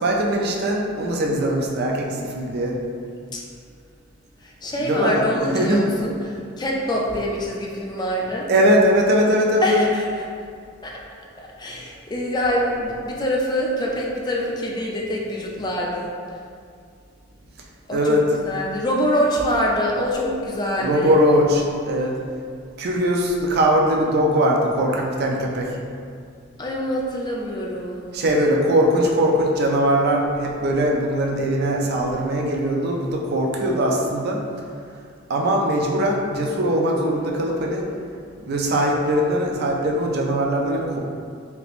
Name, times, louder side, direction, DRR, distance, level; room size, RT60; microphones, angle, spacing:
voice 1, 0.0-2.8 4.8-5.9 8.5-9.8 17.9-18.2 20.8-22.2 22.8-25.8 28.1-34.4 35.3-37.9 38.4-41.0, equal, 55° right, 0 dB, 0.4 m, -20 dB
voice 2, 4.4-8.5 9.6-10.2 10.8-11.0 11.4-16.1 17.9-21.2 26.6-28.2, equal, 20° left, -2 dB, 0.4 m, -25 dB
3.3 x 2.9 x 2.4 m, 2.3 s
head